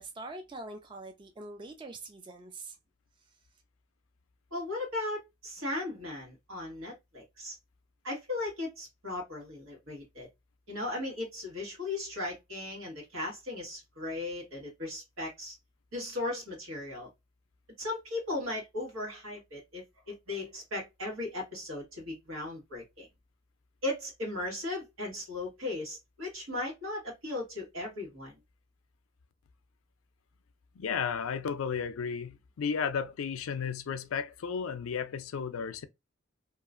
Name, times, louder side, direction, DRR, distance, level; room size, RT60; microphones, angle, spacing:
voice 1, 0.0-2.8, right 2 dB, 25° right, 0.3 m, -44 dB
voice 2, 4.5-7.6 8.0-10.3 10.7-15.5 15.9-17.1 17.8-23.1 23.8-28.4, left 2 dB, 85° right, 1.6 m, -37 dB
voice 3, 30.8-35.9, left 6 dB, 85° left, 0.4 m, -33 dB
2.8 x 2.4 x 2.4 m
head